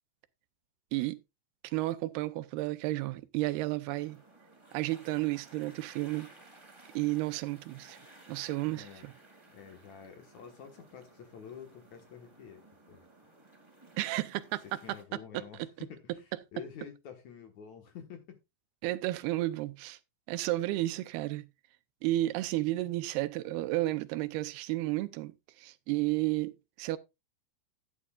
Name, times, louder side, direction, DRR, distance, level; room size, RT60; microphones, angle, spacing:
voice 1, 1.7-4.2 4.7-6.3 6.9-8.0 8.3-9.1 14.0-14.6 15.3-15.4 18.8-20.0 20.3-21.4 22.0-25.3 25.6-27.0, right 17 dB, 85° right, 2.6 m, -32 dB
sound 1, 3.9-15.0, right 2 dB, 15° right, 1.0 m, -57 dB
voice 2, 8.7-9.1 9.5-12.6 12.9-13.3 14.6-18.4, left 7 dB, 60° left, 2.2 m, -49 dB
12.5 x 9.4 x 2.4 m
omnidirectional pair, 4.5 m